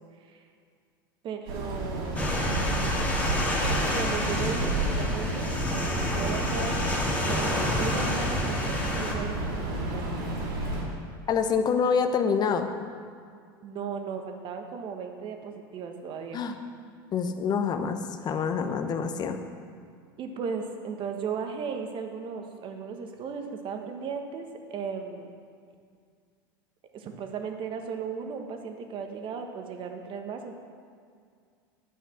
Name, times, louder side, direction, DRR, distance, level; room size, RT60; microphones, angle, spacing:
voice 1, 1.2-2.3 3.9-6.7 7.2-9.6 9.9-10.0 13.6-16.4 20.2-25.3 26.9-30.5, right 6 dB, 45° right, 4 dB, 1.4 m, -36 dB
sound 1, 1.5-10.8, right 2 dB, 80° right, 3.0 m, -31 dB
sound 2, 2.2-9.1, left 1 dB, 10° left, 2.2 m, -29 dB
voice 2, 11.3-12.7 16.3-16.6 17.1-19.4, left 6 dB, 35° left, 7 dB, 0.9 m, -26 dB
10.5 x 5.7 x 7.4 m, 2.2 s
hypercardioid pair, 95°, 12 cm